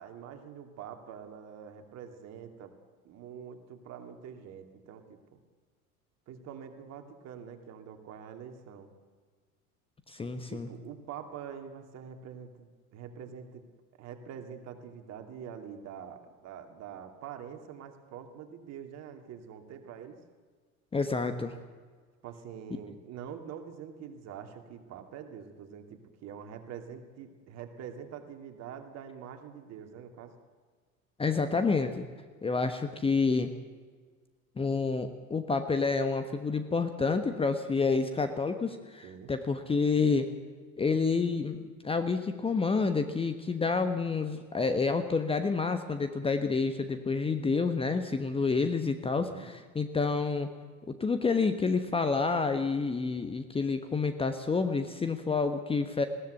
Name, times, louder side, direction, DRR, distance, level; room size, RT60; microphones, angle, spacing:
voice 1, 0.0-2.7 3.0-5.4 6.3-8.9 10.5-13.6 14.0-20.2 22.2-30.3 39.0-39.3 49.1-49.5, right 8 dB, 40° right, 6 dB, 2.6 m, -45 dB
voice 2, 10.1-10.7 20.9-21.6 31.2-32.1 32.4-33.5 34.6-40.3 40.8-50.5 50.9-56.1, left 4 dB, 15° left, 8 dB, 1.1 m, -29 dB
20.5 x 17.0 x 8.1 m, 1.5 s
figure-of-eight pair, 75°, 42 cm